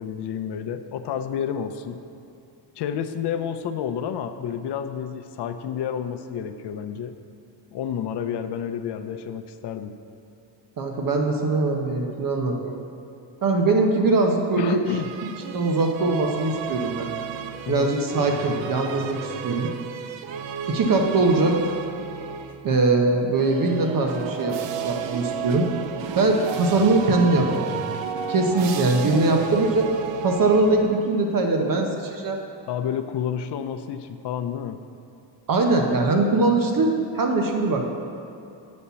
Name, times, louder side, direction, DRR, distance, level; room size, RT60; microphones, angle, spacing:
voice 1, 0.0-2.0 2.8-7.1 7.7-10.0 14.6-15.1 17.7-17.9 29.1-29.3 32.7-34.8, left 8 dB, 60° left, 9 dB, 0.6 m, -30 dB
voice 2, 10.8-12.7 13.4-14.8 15.5-17.1 17.7-19.7 20.7-21.7 22.6-24.6 24.8-25.7 26.2-27.9 28.3-29.8 30.2-32.4 35.5-37.9, right 3 dB, 45° right, 2 dB, 0.9 m, -21 dB
sound 1, 14.9-22.7 23.3-31.2, right 7 dB, 75° right, 0.6 m, -33 dB
9.8 x 4.3 x 6.9 m, 2.6 s
cardioid pair, 135°, 45 cm